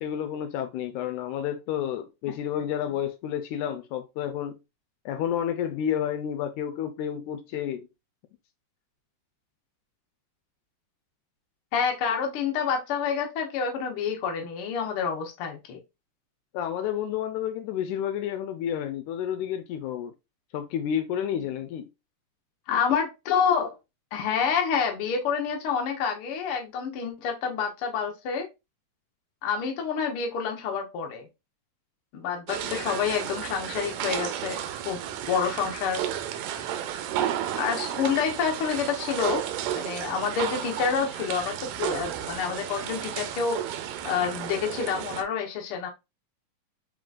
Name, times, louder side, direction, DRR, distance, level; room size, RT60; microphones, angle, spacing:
voice 1, 0.0-4.6 5.1-7.9 16.5-20.1 20.5-21.9, left 9 dB, 80° left, 1.9 m, -30 dB
voice 2, 11.7-15.8 22.7-23.7 24.1-28.5 29.4-31.2 32.1-35.0 35.3-36.0 37.6-39.4 39.7-43.6 44.0-45.9, left 6 dB, 65° left, 1.4 m, -28 dB
sound 1, 32.5-45.2, right 10 dB, 90° right, 2.1 m, -33 dB
4.9 x 3.7 x 2.4 m
omnidirectional pair, 3.6 m